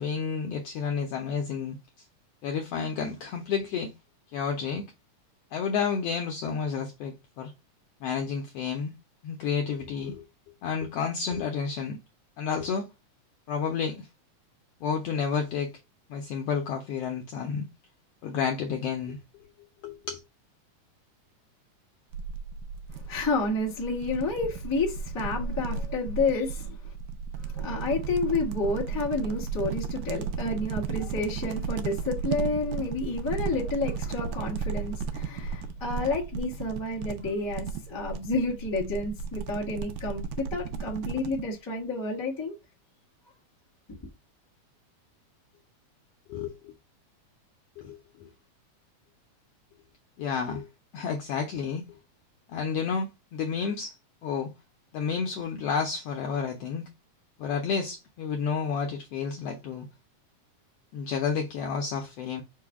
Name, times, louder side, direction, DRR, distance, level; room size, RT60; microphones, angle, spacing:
voice 1, 0.0-1.8 2.4-3.9 4.3-4.8 5.5-7.5 8.0-8.9 9.2-10.2 10.6-12.0 12.4-12.9 13.5-14.1 14.8-15.7 16.1-17.6 18.2-19.2 19.8-20.2 46.3-46.7 47.8-48.3 50.2-50.7 50.9-51.9 52.5-54.0 54.2-54.5 54.9-56.9 57.4-59.8 60.9-62.4, left 6 dB, 75° left, 1.4 m, -30 dB
sound 1, 22.1-41.4, right 5 dB, 80° right, 1.8 m, -34 dB
voice 2, 22.9-26.9 27.4-42.5 43.9-44.0, left 3 dB, 15° left, 0.7 m, -30 dB
4.7 x 2.1 x 4.5 m
omnidirectional pair, 3.3 m